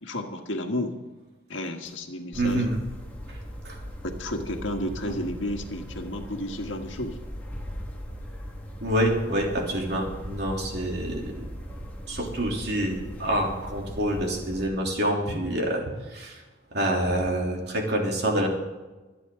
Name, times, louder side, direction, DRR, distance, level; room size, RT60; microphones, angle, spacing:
voice 1, 0.0-1.0 1.5-2.6 4.0-7.2, left 1 dB, 75° left, 4 dB, 1.7 m, -32 dB
sound 1, 2.3-14.7, equal, 10° left, 1.8 m, -39 dB
voice 2, 2.4-2.7 3.3-3.4 3.6-3.8 5.1-5.2 8.8-11.3 12.1-15.8 16.1-16.4 16.7-18.5, right 1 dB, 55° right, 0 dB, 3.2 m, -27 dB
25.5 x 9.3 x 3.9 m, 1.2 s
head